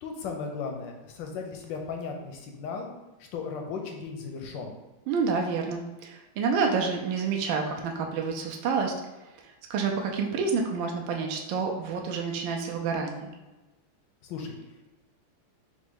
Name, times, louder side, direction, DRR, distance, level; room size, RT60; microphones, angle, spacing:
voice 1, 0.0-2.9 3.3-4.7 14.2-14.6, left 5 dB, 75° left, 2 dB, 1.1 m, -36 dB
voice 2, 5.1-8.9 9.4-13.3, right 5 dB, 75° right, 2 dB, 1.2 m, -28 dB
4.1 x 2.2 x 4.6 m, 1.1 s
omnidirectional pair, 2.3 m